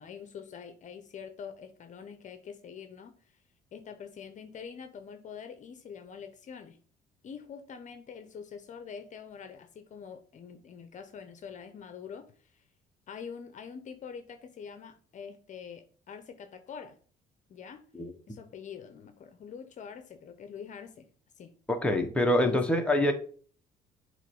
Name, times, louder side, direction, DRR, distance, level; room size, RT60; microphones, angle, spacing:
voice 1, 0.0-3.4 3.7-6.8 7.2-12.6 13.1-17.0 17.5-17.8 18.3-21.1 21.4-21.5 22.2-22.6, left 6 dB, 45° left, 9 dB, 0.9 m, -45 dB
voice 2, 21.7-23.1, left 1 dB, 5° left, 2 dB, 1.2 m, -25 dB
7.4 x 3.2 x 5.4 m, 0.44 s
cardioid pair, 110°, 17 cm